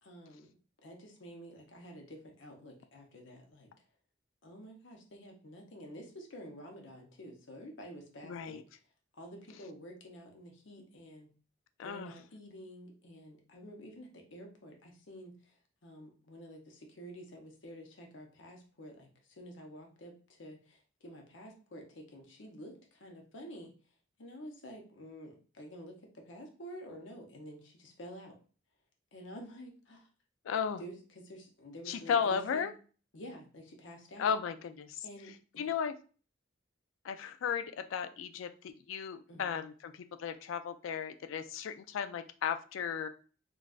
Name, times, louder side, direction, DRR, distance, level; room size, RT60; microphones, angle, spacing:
voice 1, 0.0-3.7 4.4-8.6 9.1-11.3 11.8-15.3 15.8-19.1 19.4-23.7 24.2-28.4 29.1-30.1 30.8-32.7 33.1-34.3 35.0-35.7 39.3-39.5, equal, 75° left, 2 dB, 0.8 m, -49 dB
voice 2, 8.2-8.6 11.8-12.1 30.5-30.8 31.9-32.7 34.2-35.0 35.6-36.0 37.0-43.1, left 7 dB, 90° left, 10 dB, 0.3 m, -35 dB
3.8 x 2.3 x 2.4 m, 0.38 s
head